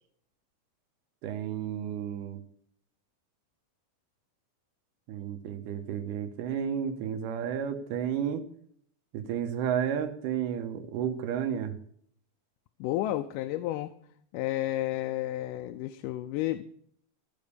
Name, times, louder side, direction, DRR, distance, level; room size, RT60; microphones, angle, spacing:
voice 1, 1.2-2.4 5.1-8.4 9.1-11.8, right 8 dB, 80° right, 7 dB, 2.6 m, -32 dB
voice 2, 12.8-13.9 14.3-16.6, left 15 dB, 85° left, 7 dB, 2.2 m, -31 dB
14.5 x 5.3 x 8.3 m, 0.64 s
omnidirectional pair, 3.7 m